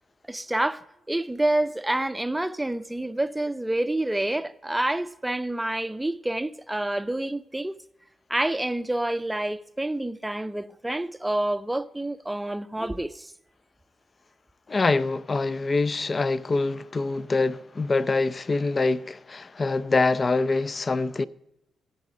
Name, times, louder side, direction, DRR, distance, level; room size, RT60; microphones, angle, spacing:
voice 1, 0.3-7.7 8.3-13.3, right 1 dB, 10° right, 0.5 m, -28 dB
voice 2, 14.7-21.3, left 3 dB, 35° left, 0.5 m, -25 dB
16.0 x 8.5 x 3.8 m
cardioid pair, 75°, 0 cm